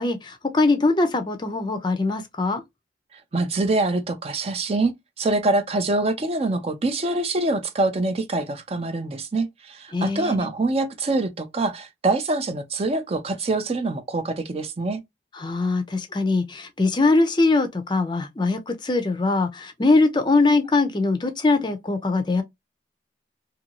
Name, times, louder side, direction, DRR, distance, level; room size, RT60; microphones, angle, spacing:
voice 1, 0.0-2.6 9.9-10.5 15.3-22.4, left 3 dB, 25° left, 0.5 m, -22 dB
voice 2, 3.1-15.0, right 2 dB, 35° right, 0.4 m, -25 dB
2.6 x 2.6 x 2.8 m
head